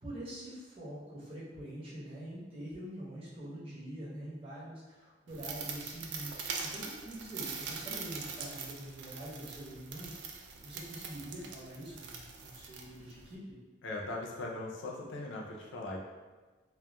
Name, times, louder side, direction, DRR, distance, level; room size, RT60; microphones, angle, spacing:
voice 1, 0.0-13.6, right 1 dB, 30° right, -8 dB, 0.8 m, -45 dB
sound 1, 5.3-13.3, right 5 dB, 70° right, 0.3 m, -43 dB
voice 2, 13.8-16.0, left 2 dB, 90° left, -1 dB, 0.5 m, -39 dB
2.2 x 2.1 x 2.8 m, 1.3 s
head